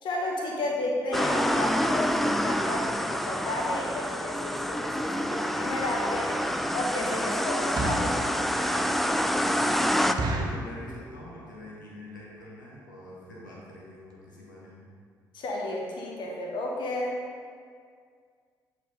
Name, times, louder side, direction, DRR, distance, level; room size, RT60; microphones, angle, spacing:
voice 1, 0.0-6.4 6.7-8.9 15.3-17.2, left 1 dB, 50° left, -1 dB, 1.2 m, -32 dB
sound 1, 1.1-10.1, equal, ahead, 0.3 m, -27 dB
sound 2, 6.1-6.2 6.6-6.8 7.5-8.2 8.7-8.8 9.1-9.2 9.6-9.7 10.2-10.7 11.3-11.6 11.8-11.9 12.2-12.4 13.0-13.1 13.3-13.5 13.8-13.9 14.1-14.2, right 2 dB, 40° right, 0.9 m, -31 dB
voice 2, 10.1-14.9, left 1 dB, 80° left, -4 dB, 1.0 m, -45 dB
8.0 x 4.2 x 4.0 m, 2.1 s
figure-of-eight pair, 45°, 10 cm